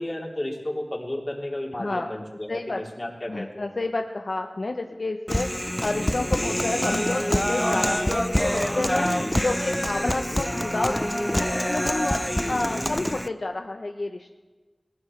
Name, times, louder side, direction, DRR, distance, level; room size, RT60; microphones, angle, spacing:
voice 1, 0.0-3.7 6.3-6.6 9.0-9.3 12.3-12.6, left 1 dB, 40° left, -1 dB, 3.3 m, -33 dB
voice 2, 1.8-2.1 2.5-2.8 3.3-5.5 5.8-9.1 9.4-12.2 12.5-14.3, left 2 dB, 80° left, 4 dB, 0.7 m, -29 dB
Human voice, 5.3-13.3, equal, 10° left, 0.5 m, -26 dB
20.0 x 19.0 x 3.3 m, 1.3 s
wide cardioid pair, 40°, 0 cm